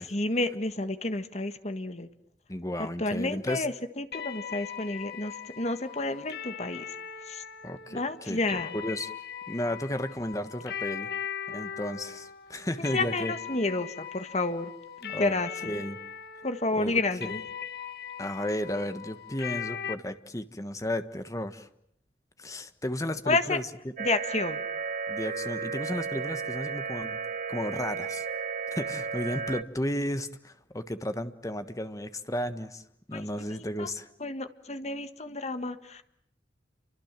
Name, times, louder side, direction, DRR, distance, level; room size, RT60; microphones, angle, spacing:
voice 1, 0.0-2.1 3.0-6.9 7.3-7.4 7.9-8.7 12.8-14.7 15.0-15.8 16.4-17.4 23.3-23.6 24.0-24.6 33.1-33.9 34.2-36.0, left 2 dB, 40° left, 10 dB, 1.6 m, -30 dB
voice 2, 2.5-3.7 7.6-8.0 8.3-9.1 9.5-11.1 11.5-13.3 15.1-15.3 15.6-16.0 16.7-17.0 18.2-21.7 22.4-23.9 25.1-27.2 27.5-28.2 28.7-32.8 33.1-34.1, left 1 dB, 20° left, 10 dB, 1.4 m, -33 dB
sound 1, 4.1-19.9, left 8 dB, 60° left, 1.6 m, -39 dB
sound 2, 24.0-29.6, right 5 dB, 45° right, 1.1 m, -34 dB
29.5 x 24.5 x 7.5 m, 0.74 s
head